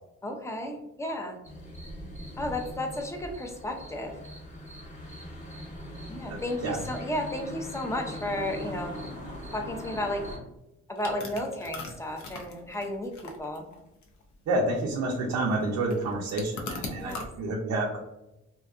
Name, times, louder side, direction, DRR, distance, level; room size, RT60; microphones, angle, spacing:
voice 1, 0.2-1.4 2.4-4.1 6.1-9.0 9.5-10.2 10.9-13.7 17.0-17.2, left 1 dB, 10° left, 3 dB, 0.5 m, -33 dB
sound 1, 1.4-10.4, equal, 25° left, 0.9 m, -41 dB
voice 2, 6.3-6.8 14.5-18.0, right 2 dB, 65° right, -1 dB, 0.5 m, -29 dB
sound 2, 11.0-17.3, left 3 dB, 70° left, 0.6 m, -41 dB
2.7 x 2.3 x 2.3 m, 0.92 s
cardioid pair, 90°, 30 cm